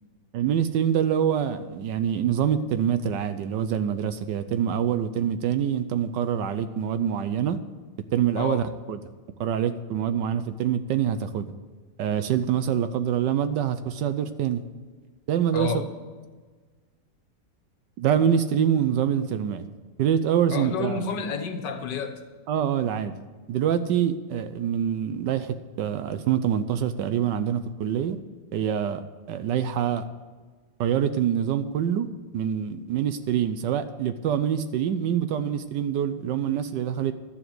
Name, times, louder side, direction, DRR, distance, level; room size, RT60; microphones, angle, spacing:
voice 1, 0.3-7.6 8.1-9.0 9.4-11.5 12.0-14.6 15.3-15.7 18.0-19.7 20.0-21.0 22.5-23.1 23.5-28.2 28.5-29.0 29.3-30.0 30.8-32.1 32.3-37.1, right 9 dB, 80° right, 10 dB, 1.3 m, -25 dB
voice 2, 8.4-8.7 15.5-15.9 20.5-22.2, left 5 dB, 75° left, 8 dB, 1.7 m, -30 dB
12.0 x 7.4 x 7.8 m, 1.4 s
omnidirectional pair, 1.9 m